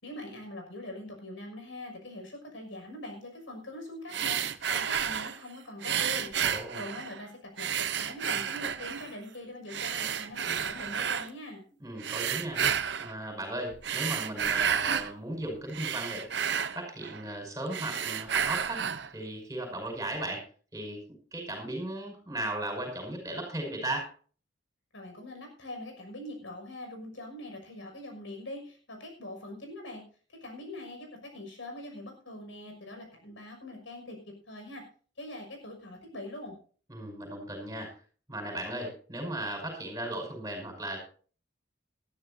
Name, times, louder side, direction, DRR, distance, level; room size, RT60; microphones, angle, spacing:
voice 1, 0.0-6.3 6.7-7.7 8.0-11.6 24.9-30.0 30.3-34.8 35.2-36.6, left 1 dB, 85° left, 3 dB, 6.2 m, -43 dB
sound 1, 4.1-5.4 5.8-7.2 7.6-9.1 9.7-11.3 12.0-13.1 13.7-15.1 15.5-17.4 17.7-19.1, right 8 dB, 65° right, 0.8 m, -31 dB
voice 2, 6.4-6.8 11.8-12.6 13.0-16.3 16.7-18.8 19.1-20.4 20.7-21.0 21.3-24.1 36.9-37.9 38.3-41.0, right 1 dB, 20° right, 2 dB, 5.5 m, -36 dB
19.5 x 13.0 x 2.8 m, 0.41 s
head